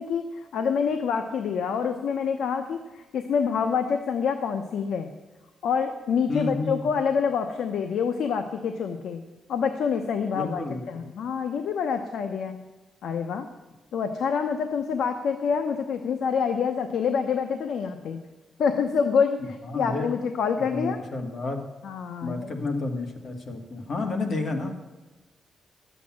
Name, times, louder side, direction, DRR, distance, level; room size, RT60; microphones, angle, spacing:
voice 1, 0.0-5.1 5.6-9.2 9.5-12.6 13.0-13.5 13.9-18.2 18.6-21.0 21.8-22.6, left 6 dB, 85° left, 7 dB, 0.8 m, -27 dB
voice 2, 6.3-6.9 10.3-11.0 19.6-20.1 20.6-21.6 22.2-24.7, left 3 dB, 50° left, 4 dB, 1.9 m, -30 dB
12.5 x 8.3 x 7.4 m, 1.2 s
wide cardioid pair, 145°, 0 cm